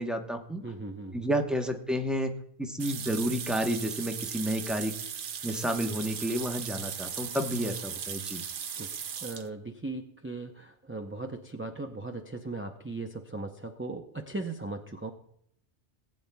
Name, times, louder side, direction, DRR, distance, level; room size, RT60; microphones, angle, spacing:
voice 1, 0.0-0.6 1.1-2.3 2.6-4.9 5.4-8.4, equal, ahead, 3 dB, 0.8 m, -30 dB
voice 2, 0.6-1.4 8.7-15.1, right 2 dB, 15° right, 3 dB, 0.4 m, -38 dB
sound 1, 2.8-9.5, right 7 dB, 55° right, 0.7 m, -38 dB
19.0 x 8.7 x 2.2 m, 0.71 s
omnidirectional pair, 1.1 m